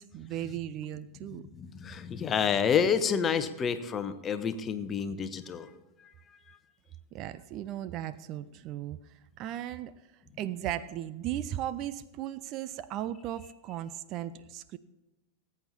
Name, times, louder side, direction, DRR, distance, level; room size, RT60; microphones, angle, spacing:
voice 1, 0.0-1.4 7.1-9.0 9.4-9.9 10.4-14.8, right 12 dB, 40° right, 16 dB, 0.5 m, -36 dB
voice 2, 1.5-5.7 6.0-6.1 6.5-6.6, left 7 dB, 25° left, 11 dB, 1.0 m, -29 dB
19.5 x 8.7 x 4.2 m, 1.0 s
figure-of-eight pair, 90°, 0 cm